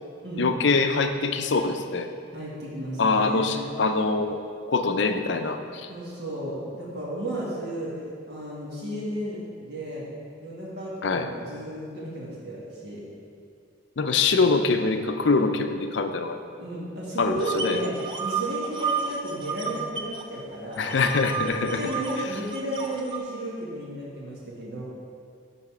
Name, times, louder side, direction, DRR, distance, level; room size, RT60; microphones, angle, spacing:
voice 1, 0.4-2.1 3.0-4.4 4.7-5.9 11.0-11.3 14.0-16.4 17.2-17.8 20.8-21.8, left 4 dB, 65° left, 7 dB, 0.5 m, -24 dB
voice 2, 2.3-3.7 5.9-10.1 10.4-13.0 16.6-20.9 21.5-24.8, right 1 dB, 55° right, -6 dB, 1.7 m, -33 dB
sound 1, 17.4-20.2 20.5-23.2, right 6 dB, 25° right, 0.5 m, -32 dB
11.0 x 4.1 x 4.9 m, 2.4 s
head